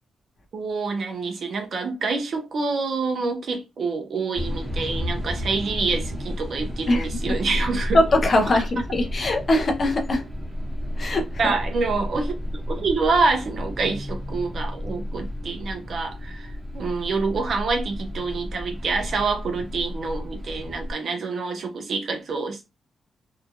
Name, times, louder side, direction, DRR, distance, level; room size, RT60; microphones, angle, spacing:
voice 1, 0.5-8.0 8.5-8.6 11.4-22.7, right 4 dB, 50° right, 0.7 m, -27 dB
sound 1, 4.3-20.9, left 1 dB, 10° right, 1.0 m, -32 dB
voice 2, 7.9-10.2 11.0-11.3, left 1 dB, 35° left, 0.6 m, -21 dB
2.7 x 2.3 x 2.7 m
wide cardioid pair, 145°, 0 cm